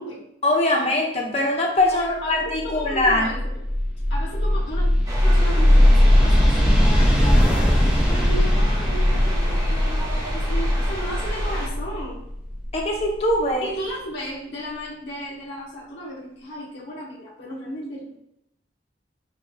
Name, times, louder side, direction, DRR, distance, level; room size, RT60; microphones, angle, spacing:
voice 1, 0.4-3.3 12.7-13.7, left 1 dB, 35° left, 0 dB, 0.8 m, -22 dB
voice 2, 1.9-3.6 4.1-4.8 5.2-12.2 13.6-18.2, equal, 80° left, -6 dB, 1.2 m, -34 dB
sound 1, 2.5-13.3, left 1 dB, 5° right, 0.7 m, -19 dB
sound 2, 5.1-11.7, equal, 20° right, 1.2 m, -31 dB
6.5 x 2.8 x 2.3 m, 0.79 s
head